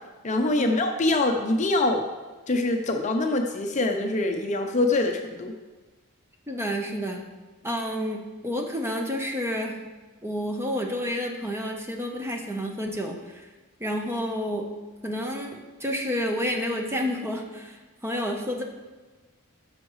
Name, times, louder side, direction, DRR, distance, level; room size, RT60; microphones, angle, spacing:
voice 1, 0.2-2.0 2.5-5.5, left 2 dB, 35° left, 4 dB, 0.6 m, -24 dB
voice 2, 6.5-7.2 7.6-9.8 10.2-13.4 13.8-14.7 15.0-17.8 18.0-18.6, equal, 10° right, 2 dB, 0.8 m, -30 dB
12.5 x 6.3 x 3.1 m, 1.3 s
head